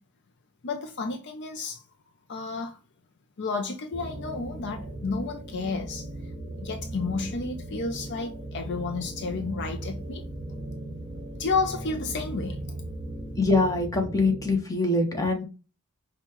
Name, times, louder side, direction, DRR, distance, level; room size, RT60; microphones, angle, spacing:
voice 1, 0.6-1.8 2.3-2.8 3.4-6.1 6.6-10.2 11.4-12.6, left 4 dB, 50° left, 0.5 m, -31 dB
sound 1, 3.9-14.6, right 1 dB, 15° right, 2.0 m, -38 dB
voice 2, 13.4-15.4, left 2 dB, 15° left, 1.0 m, -24 dB
5.4 x 2.3 x 2.9 m
head